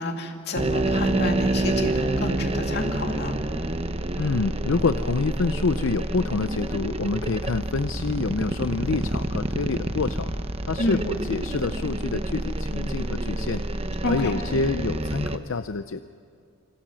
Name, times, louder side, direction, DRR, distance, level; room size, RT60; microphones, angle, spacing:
voice 1, 0.0-3.4 10.8-11.0 14.0-14.3, left 1 dB, 50° left, 3 dB, 2.4 m, -29 dB
sound 1, 0.5-15.4, right 1 dB, 30° right, 0.9 m, -28 dB
voice 2, 4.2-10.3 10.7-13.6 14.1-16.0, left 4 dB, 70° left, 11 dB, 0.6 m, -27 dB
26.5 x 25.0 x 6.3 m, 2.3 s
head